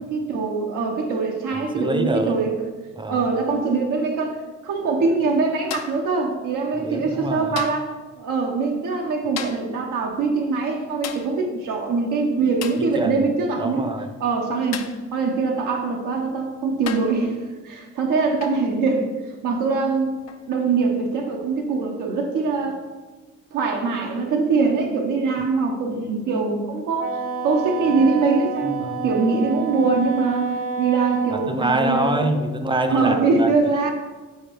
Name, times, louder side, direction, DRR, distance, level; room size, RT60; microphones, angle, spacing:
voice 1, 0.0-2.5 3.1-4.4 4.6-13.8 14.2-14.9 15.1-19.1 19.4-20.1 20.5-22.8 23.5-32.3 32.9-33.9, right 4 dB, 85° right, 0 dB, 0.9 m, -23 dB
voice 2, 1.5-2.3 3.0-3.3 6.8-7.5 13.0-13.2 13.6-14.1 28.6-29.0 31.3-33.5, right 2 dB, 15° right, 7 dB, 0.5 m, -25 dB
sound 1, 5.7-6.1 7.6-8.0 9.4-9.8 11.0-11.4 12.6-12.9 14.7-15.1 16.1-16.2 16.9-17.2 18.4-18.7 20.3-20.5, left 8 dB, 60° left, 0.5 m, -34 dB
Wind instrument woodwind instrument, 27.0-31.5, right 4 dB, 50° right, 0.8 m, -29 dB
5.2 x 4.1 x 4.5 m, 1.3 s
cardioid pair, 90°, 30 cm